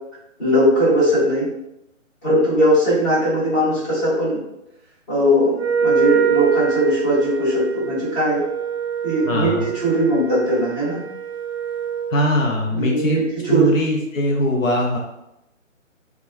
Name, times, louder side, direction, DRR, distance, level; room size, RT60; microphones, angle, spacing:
voice 1, 0.4-1.5 2.2-4.4 5.1-8.4 9.0-11.0 12.7-13.7, equal, 20° left, -12 dB, 1.3 m, -19 dB
Wind instrument woodwind instrument, 5.6-12.2, right 7 dB, 55° right, 0.4 m, -24 dB
voice 2, 9.3-9.7 12.1-15.0, left 1 dB, 80° left, -1 dB, 0.6 m, -21 dB
2.7 x 2.3 x 2.3 m, 0.85 s
figure-of-eight pair, 145°, 40 cm